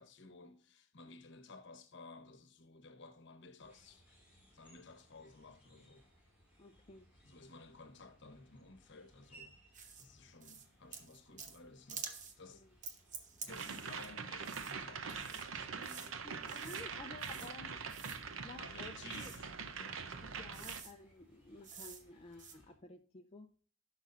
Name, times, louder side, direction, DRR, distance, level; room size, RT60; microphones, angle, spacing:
voice 1, 0.0-4.0 4.5-6.1 7.2-9.5 10.0-12.6 13.4-16.3 17.3-17.6 18.6-20.0, left 3 dB, 60° left, 1.1 m, -55 dB
sound 1, 3.6-22.8, right 1 dB, 10° right, 4.5 m, -66 dB
voice 2, 6.6-7.1 12.5-12.7 16.2-17.8 18.4-19.3 20.2-23.6, left 3 dB, 30° left, 0.5 m, -53 dB
sound 2, 9.7-10.0 10.4-10.7 10.9-11.6 11.9-12.4 12.8-14.1 14.4-14.7 15.1-15.4 15.8-16.1 16.5-16.9 17.2-17.5 17.9-18.2 19.1-19.4 20.1-20.2 20.5-20.9 21.6-22.0 22.3-22.5, right 6 dB, 40° right, 1.0 m, -49 dB
sound 3, 13.5-20.8, right 5 dB, 80° right, 0.8 m, -44 dB
14.0 x 6.2 x 2.6 m
head